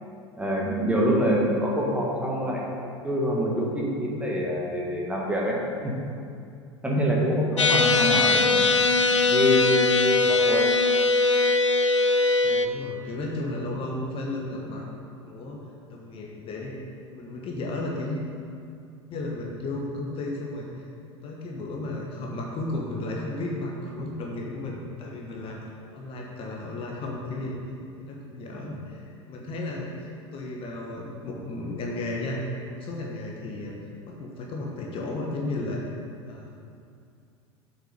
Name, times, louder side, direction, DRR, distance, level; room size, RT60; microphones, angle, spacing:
voice 1, 0.4-2.7 3.0-5.6 5.8-6.0 6.8-8.7 9.3-10.7 28.5-28.6, equal, 10° right, -3 dB, 1.7 m, -25 dB
sound 1, 7.6-12.7, left 3 dB, 85° left, 0.4 m, -21 dB
voice 2, 10.1-10.5 12.4-14.8 15.2-15.6 15.9-16.8 17.1-18.2 19.1-20.9 21.2-27.6 28.0-33.7 34.1-36.0 36.2-36.5, left 2 dB, 40° left, -1 dB, 1.3 m, -34 dB
7.6 x 6.3 x 5.3 m, 2.4 s
figure-of-eight pair, 80°, 15 cm